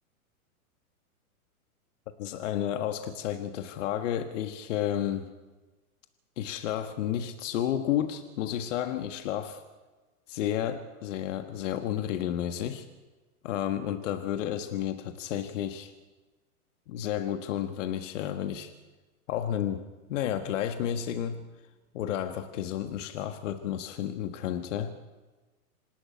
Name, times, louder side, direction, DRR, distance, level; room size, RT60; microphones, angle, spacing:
voice 1, 2.2-5.3 6.4-9.6 10.3-12.9 13.4-15.9 16.9-18.7 19.3-21.4 21.9-24.9, left 10 dB, 55° left, 8 dB, 1.6 m, -31 dB
26.5 x 11.5 x 9.5 m, 1.2 s
hypercardioid pair, 130°, 44 cm